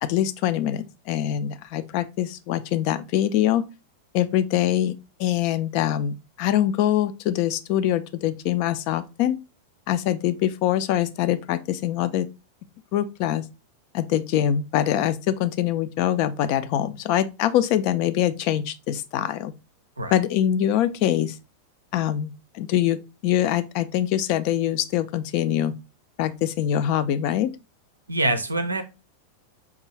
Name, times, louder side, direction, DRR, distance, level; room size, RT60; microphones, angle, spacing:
voice 1, 0.0-3.7 4.1-4.9 5.2-9.4 9.9-12.3 12.9-13.5 13.9-19.5 20.1-21.4 21.9-25.7 26.2-27.5, left 11 dB, 45° left, 0.3 m, -24 dB
voice 2, 28.1-28.8, right 2 dB, 80° right, 0.5 m, -24 dB
4.7 x 2.6 x 3.1 m
figure-of-eight pair, 90°, 0 cm